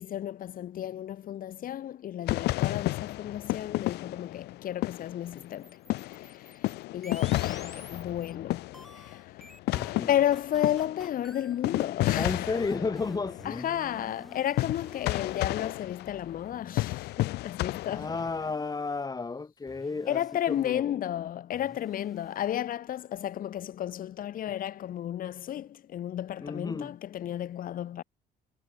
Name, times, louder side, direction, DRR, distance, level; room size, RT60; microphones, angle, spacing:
voice 1, 0.0-9.2 10.1-12.5 13.5-18.1 20.1-28.0, left 11 dB, 55° left, 1.8 m, -33 dB
sound 1, 2.3-5.6 5.9-18.5, left 19 dB, 80° left, 0.6 m, -32 dB
sound 2, 5.3-8.3 8.7-15.7 16.0-17.1 18.0-19.0 19.7-20.8 21.5-22.6, equal, ahead, 7.2 m, -51 dB
voice 2, 9.7-10.1 12.2-13.7 17.9-20.2 20.5-20.9 26.4-26.9, left 4 dB, 20° left, 3.9 m, -32 dB
cardioid pair, 110°, 17 cm